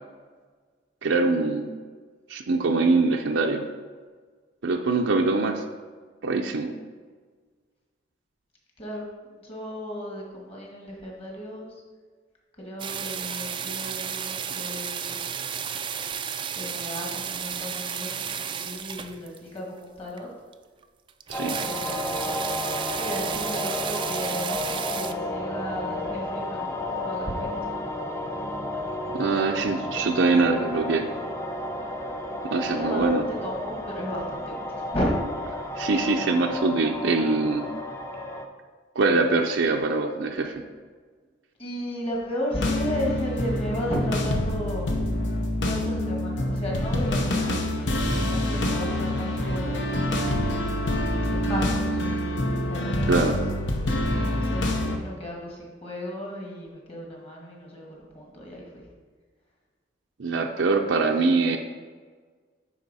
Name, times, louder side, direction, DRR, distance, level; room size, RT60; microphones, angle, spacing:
voice 1, 1.0-1.7 2.3-3.6 4.6-5.6 6.2-6.7 21.3-21.6 29.1-31.1 32.5-33.2 35.8-37.7 39.0-40.5 53.1-53.4 60.2-61.6, right 3 dB, 75° right, 2 dB, 0.5 m, -23 dB
voice 2, 8.8-11.7 12.6-15.2 16.5-20.3 21.5-22.4 22.9-27.7 32.8-34.6 34.9-35.2 35.8-35.9 41.6-45.1 45.6-47.8 48.1-50.0 51.3-52.0 52.7-53.0 54.3-58.8, equal, 30° left, -2 dB, 1.7 m, -34 dB
sound 1, 12.8-19.6 20.2-20.3 20.5-20.6 20.8-20.9 21.1-25.1, right 7 dB, 25° right, 0.3 m, -33 dB
sound 2, 21.3-38.4, left 1 dB, 15° left, 0.6 m, -32 dB
sound 3, 42.5-55.0, left 1 dB, 70° left, 0.8 m, -26 dB
9.8 x 4.3 x 4.1 m, 1.5 s
head